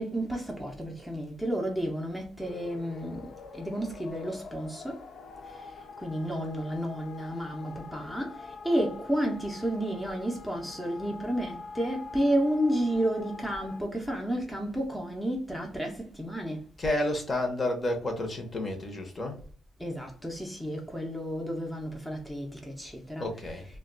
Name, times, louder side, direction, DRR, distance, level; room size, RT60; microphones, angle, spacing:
voice 1, 0.0-5.0 6.0-16.7 19.8-23.3, equal, ahead, 0.6 m, -31 dB
sound 1, 2.4-13.8, left 4 dB, 65° left, 0.3 m, -45 dB
voice 2, 16.8-19.4 23.2-23.7, left 1 dB, 35° left, 0.8 m, -30 dB
2.3 x 2.2 x 3.7 m
cardioid pair, 90°, 0 cm